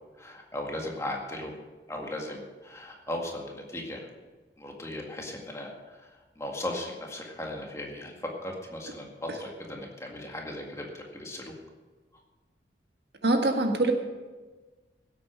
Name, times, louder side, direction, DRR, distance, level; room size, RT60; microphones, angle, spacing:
voice 1, 0.2-1.5 1.9-4.1 4.6-11.5, left 1 dB, 15° left, 0 dB, 1.9 m, -37 dB
voice 2, 13.2-13.9, right 2 dB, 65° right, 4 dB, 1.6 m, -23 dB
17.0 x 8.3 x 6.3 m, 1.3 s
head